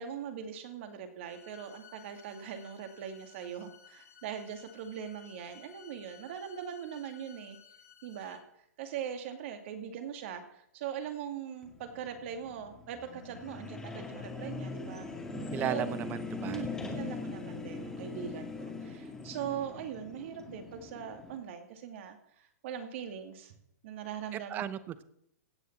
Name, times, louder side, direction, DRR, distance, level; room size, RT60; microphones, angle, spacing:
voice 1, 0.0-7.6 8.0-8.4 8.8-15.1 15.6-15.9 16.4-22.2 22.6-23.5 23.8-24.7, right 8 dB, 50° right, 7 dB, 2.4 m, -41 dB
sound 1, 1.2-8.4, left 8 dB, 75° left, 5.0 m, -57 dB
sound 2, 11.6-21.4, left 4 dB, 5° left, 1.9 m, -41 dB
voice 2, 15.5-16.9 24.3-25.0, right 11 dB, 20° right, 16 dB, 0.7 m, -36 dB
16.5 x 6.7 x 7.4 m, 0.76 s
hypercardioid pair, 150°, 9 cm